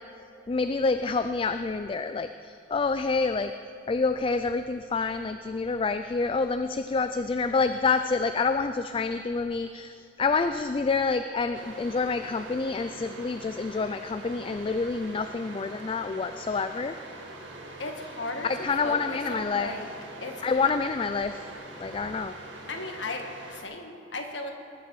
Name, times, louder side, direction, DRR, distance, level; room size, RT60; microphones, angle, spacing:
voice 1, 0.5-3.5 3.9-17.0 18.4-19.7 20.4-21.4 21.8-22.3, left 4 dB, 30° left, 9 dB, 0.3 m, -27 dB
sound 1, 11.5-23.6, right 2 dB, 85° right, 1.7 m, -44 dB
voice 2, 17.8-19.9 20.2-20.7 22.7-24.5, left 2 dB, 75° left, 3 dB, 1.6 m, -36 dB
20.5 x 9.0 x 4.7 m, 2.8 s
head